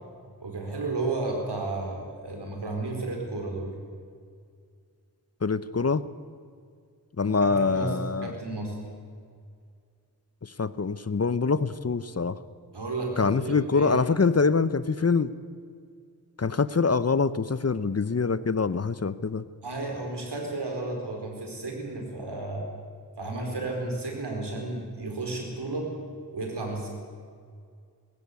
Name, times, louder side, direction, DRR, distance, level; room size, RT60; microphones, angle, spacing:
voice 1, 0.4-3.7 7.4-8.8 12.7-14.0 19.6-22.7 23.2-25.9 26.3-26.9, right 2 dB, 90° right, 1 dB, 4.6 m, -32 dB
voice 2, 5.4-6.0 7.2-8.3 10.4-12.4 13.2-15.3 16.4-19.4, left 4 dB, 40° left, 16 dB, 0.7 m, -25 dB
20.0 x 16.0 x 8.3 m, 2.2 s
wide cardioid pair, 65°, 40 cm